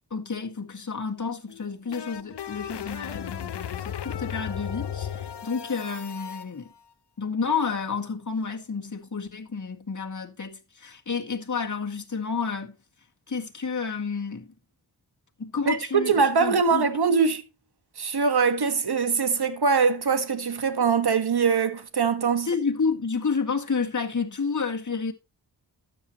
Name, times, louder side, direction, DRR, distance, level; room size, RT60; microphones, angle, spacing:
voice 1, 0.1-6.7 7.2-12.8 13.3-14.5 15.4-16.1 16.4-17.0 22.4-25.1, left 5 dB, 45° left, 1.8 m, -30 dB
sound 1, 1.5-6.4, left 9 dB, 80° left, 0.7 m, -35 dB
voice 2, 15.7-17.4 18.0-22.5, right 5 dB, 70° right, 1.6 m, -23 dB
12.5 x 9.4 x 3.0 m
wide cardioid pair, 65°, 40 cm